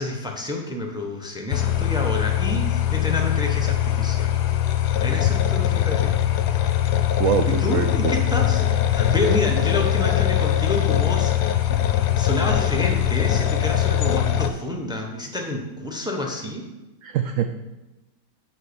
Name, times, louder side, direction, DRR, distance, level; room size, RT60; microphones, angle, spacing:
voice 1, 0.0-4.4 5.0-6.2 7.5-11.8 12.1-16.6, left 1 dB, 5° right, 2 dB, 0.5 m, -29 dB
sound 1, 1.5-14.5, left 11 dB, 70° left, 1.1 m, -21 dB
voice 2, 7.2-8.1 17.0-17.5, right 9 dB, 80° right, 7 dB, 0.7 m, -24 dB
7.3 x 4.5 x 6.9 m, 1.0 s
omnidirectional pair, 1.9 m